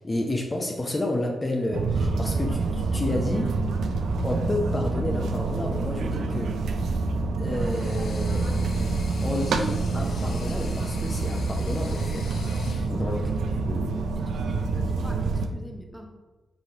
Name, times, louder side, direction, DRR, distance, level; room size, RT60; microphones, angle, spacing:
voice 1, 0.0-3.6 4.2-6.6 7.4-12.3 12.9-13.3 13.7-13.9, left 2 dB, 30° left, 1 dB, 0.6 m, -31 dB
sound 1, 1.7-15.5, right 3 dB, 80° right, 0.3 m, -27 dB
sound 2, 7.4-13.0, left 4 dB, 75° left, 0.5 m, -45 dB
voice 2, 13.1-13.4 14.1-16.0, equal, 5° right, 1 dB, 0.9 m, -44 dB
5.4 x 3.1 x 2.8 m, 1.2 s
supercardioid pair, 50°, 0 cm